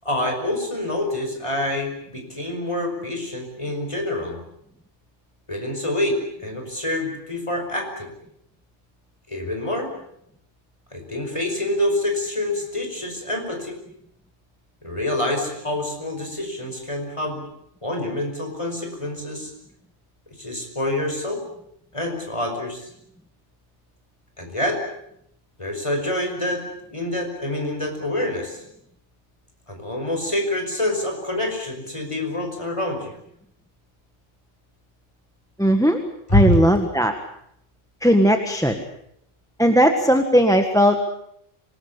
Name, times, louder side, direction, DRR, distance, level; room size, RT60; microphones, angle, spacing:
voice 1, 0.0-4.4 5.5-8.1 9.3-9.9 10.9-13.8 14.8-17.4 17.8-19.5 20.4-21.4 21.9-22.9 24.4-24.8 25.6-28.6 29.7-33.1 36.3-36.6, left 1 dB, 25° left, 3 dB, 5.5 m, -26 dB
voice 2, 35.6-36.0 36.3-37.1 38.0-38.8 39.6-41.0, equal, 5° left, 6 dB, 1.5 m, -17 dB
25.5 x 19.5 x 8.6 m, 0.75 s
omnidirectional pair, 1.2 m